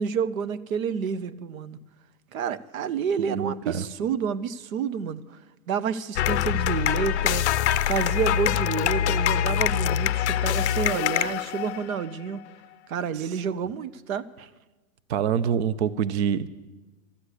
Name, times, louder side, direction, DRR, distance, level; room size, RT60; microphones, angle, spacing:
voice 1, 0.0-1.8 2.3-5.2 5.7-7.5 7.9-12.4 12.9-14.5, right 7 dB, 80° right, 15 dB, 0.8 m, -29 dB
voice 2, 3.2-3.8 13.1-13.4 15.1-16.5, right 8 dB, 55° right, 16 dB, 0.5 m, -26 dB
sound 1, 6.2-12.1, left 10 dB, 55° left, 0.5 m, -24 dB
13.0 x 8.2 x 9.8 m, 1.2 s
supercardioid pair, 175°, 41 cm